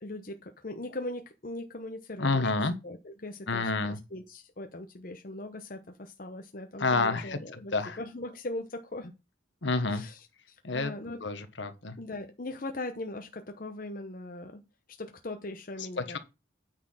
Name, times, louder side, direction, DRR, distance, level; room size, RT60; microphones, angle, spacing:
voice 1, 0.0-9.1 9.9-11.2 12.0-14.7 15.0-16.2, left 2 dB, 45° left, 0.8 m, -40 dB
voice 2, 2.2-2.7 3.5-4.0 6.8-8.0 9.6-10.0 10.6-10.9 11.2-12.0 16.0-16.2, left 3 dB, 70° left, 1.2 m, -29 dB
9.2 x 4.3 x 5.6 m
head